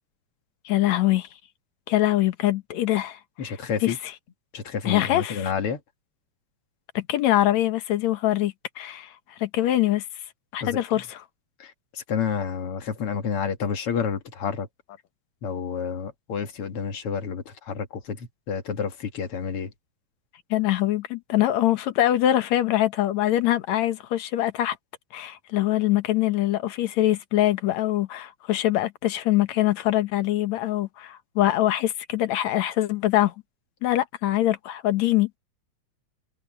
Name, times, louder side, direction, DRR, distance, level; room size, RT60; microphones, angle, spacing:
voice 1, 0.7-1.3 1.9-3.2 3.4-3.5 3.8-3.9 4.9-5.5 7.0-9.1 9.4-10.0 10.5-11.2 20.5-24.8 25.1-33.3 33.8-35.3, left 14 dB, 75° left, 2.4 m, -23 dB
voice 2, 3.4-4.0 4.5-5.8 10.6-11.0 11.6-14.7 15.4-19.7, left 6 dB, 55° left, 2.6 m, -30 dB
omnidirectional pair, 3.3 m